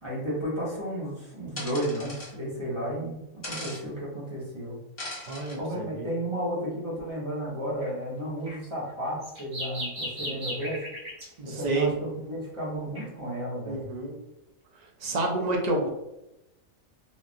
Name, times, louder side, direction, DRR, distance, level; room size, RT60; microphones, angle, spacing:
voice 1, 0.0-4.8 5.6-10.8 11.4-13.8, equal, 25° right, -8 dB, 1.0 m, -33 dB
sound 1, 1.6-2.3 3.4-3.8 5.0-5.6, left 1 dB, 30° left, 1.0 m, -38 dB
voice 2, 5.2-6.1 11.4-11.9 13.7-14.2 15.0-15.9, right 2 dB, 55° right, 0 dB, 0.5 m, -29 dB
sound 2, 7.8-7.9 8.5-11.3 12.9-13.0, equal, 70° right, 1.4 m, -36 dB
3.1 x 2.5 x 2.5 m, 0.90 s
omnidirectional pair, 1.4 m